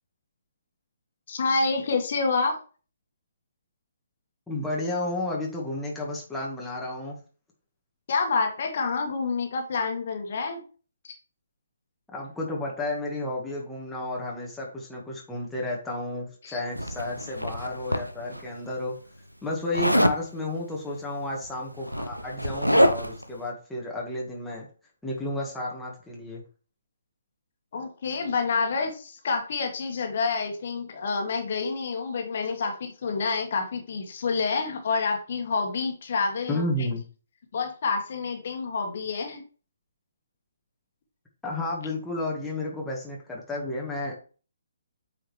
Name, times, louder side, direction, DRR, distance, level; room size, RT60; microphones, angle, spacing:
voice 1, 1.3-2.6 8.1-10.6 11.0-11.2 16.4-16.6 27.7-36.6 37.5-39.4, left 4 dB, 45° left, 3 dB, 1.7 m, -28 dB
voice 2, 4.5-7.2 12.1-19.0 19.4-24.7 25.0-26.4 36.5-37.0 41.4-44.1, left 2 dB, 5° left, -3 dB, 1.6 m, -32 dB
Zipper (clothing), 16.8-18.4 19.7-20.2 21.4-21.5 21.8-23.2, equal, 90° right, 0.8 m, -24 dB
8.5 x 4.9 x 3.3 m, 0.37 s
figure-of-eight pair, 135°, 0 cm